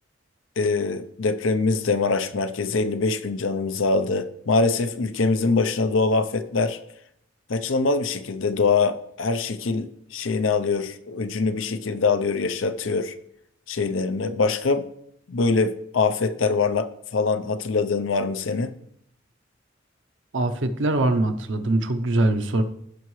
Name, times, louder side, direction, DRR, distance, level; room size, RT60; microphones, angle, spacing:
voice 1, 0.6-6.8 7.5-13.1 13.7-14.9 15.3-18.7, left 4 dB, 90° left, 10 dB, 0.6 m, -23 dB
voice 2, 20.3-22.6, right 2 dB, 70° right, 8 dB, 0.7 m, -22 dB
16.5 x 5.6 x 3.2 m, 0.73 s
head